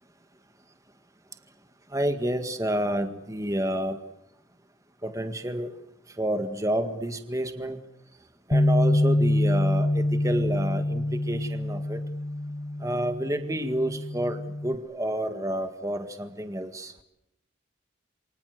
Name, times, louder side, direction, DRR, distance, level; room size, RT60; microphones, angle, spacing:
voice 1, 1.9-4.0 5.0-5.8 6.2-7.8 8.5-12.0 12.8-16.9, right 1 dB, 15° right, 7 dB, 1.8 m, -29 dB
Bass guitar, 8.5-14.8, left 1 dB, 40° left, 1.1 m, -26 dB
29.0 x 24.0 x 8.0 m, 0.87 s
head